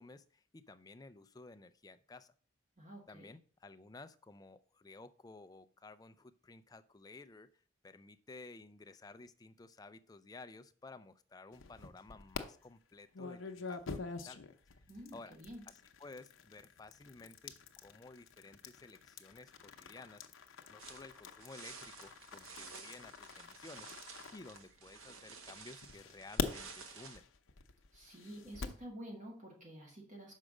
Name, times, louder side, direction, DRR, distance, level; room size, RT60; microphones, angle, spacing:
voice 1, 0.0-2.3 3.1-7.5 7.8-14.4 15.1-15.4 15.7-20.3 20.7-23.9 24.3-27.2, left 3 dB, 20° left, 10 dB, 0.4 m, -54 dB
voice 2, 2.8-3.3 14.9-15.6 27.9-30.3, equal, 35° right, -1 dB, 1.8 m, -50 dB
sound 1, 11.5-12.4 13.1-25.2 25.8-28.9, left 4 dB, 75° left, 0.7 m, -45 dB
sound 2, 20.8-27.2, right 5 dB, 85° right, 1.3 m, -53 dB
6.4 x 4.9 x 6.2 m, 0.43 s
head